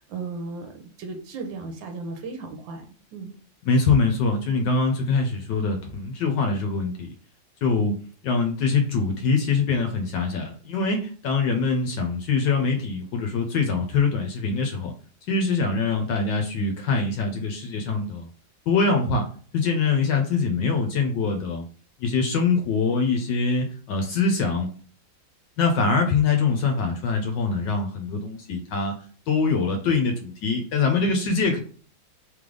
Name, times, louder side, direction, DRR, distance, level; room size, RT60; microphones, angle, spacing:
voice 1, 0.1-0.7 1.0-2.9 3.1-3.3, right 3 dB, 80° right, 4 dB, 1.5 m, -35 dB
voice 2, 3.6-7.1 7.6-14.9 15.3-18.3 18.7-19.3 19.5-21.7 22.0-24.7 25.6-28.9 29.3-31.6, left 4 dB, 70° left, 3 dB, 1.3 m, -23 dB
3.4 x 3.3 x 3.7 m, 0.43 s
omnidirectional pair, 2.1 m